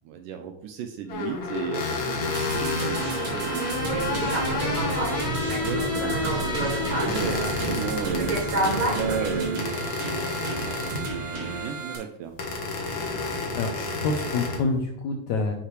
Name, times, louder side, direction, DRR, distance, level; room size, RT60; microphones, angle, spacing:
voice 1, 0.0-3.8 4.7-10.2 10.6-12.4, right 8 dB, 80° right, 6 dB, 1.9 m, -35 dB
sound 1, 1.1-9.1 9.6-11.2 12.4-14.6, left 4 dB, 60° left, 1.3 m, -31 dB
sound 2, 2.3-12.0, right 3 dB, 50° right, 2.5 m, -32 dB
sound 3, 3.7-9.4, right 1 dB, 25° right, 2.8 m, -29 dB
voice 2, 13.5-15.5, left 3 dB, 80° left, 2 dB, 1.7 m, -27 dB
9.6 x 5.8 x 3.2 m, 0.73 s
omnidirectional pair, 4.2 m